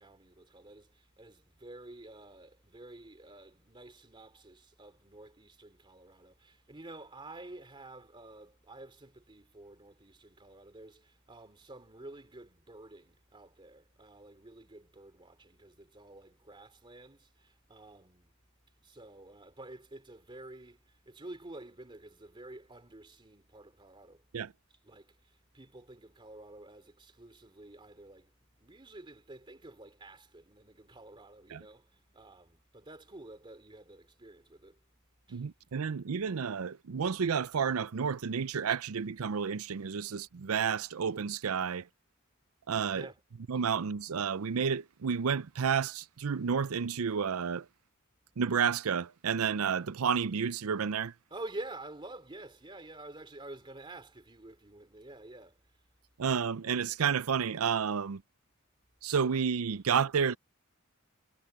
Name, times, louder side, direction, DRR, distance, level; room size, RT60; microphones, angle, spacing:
voice 1, 0.0-18.3 18.8-24.2 24.8-28.3 28.6-34.8 35.3-35.4 42.9-43.2 43.5-43.6 51.3-55.6, right 2 dB, 25° right, 2.8 m, -49 dB
voice 2, 35.3-41.8 42.7-43.1 43.5-47.7 48.4-51.1 56.2-58.2 59.0-60.4, right 6 dB, 90° right, 0.5 m, -31 dB
head